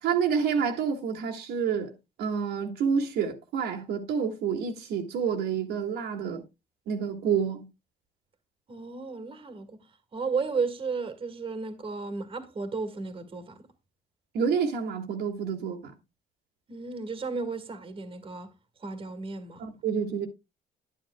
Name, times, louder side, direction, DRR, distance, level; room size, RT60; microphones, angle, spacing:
voice 1, 0.0-1.9 2.2-6.4 6.9-7.7 14.3-15.9 19.6-20.3, right 6 dB, 75° right, 1.9 m, -28 dB
voice 2, 8.7-9.8 10.1-13.5 16.7-18.5 18.8-19.7, right 4 dB, 30° right, 1.8 m, -33 dB
11.0 x 10.0 x 2.2 m
cardioid pair, 110°, 17 cm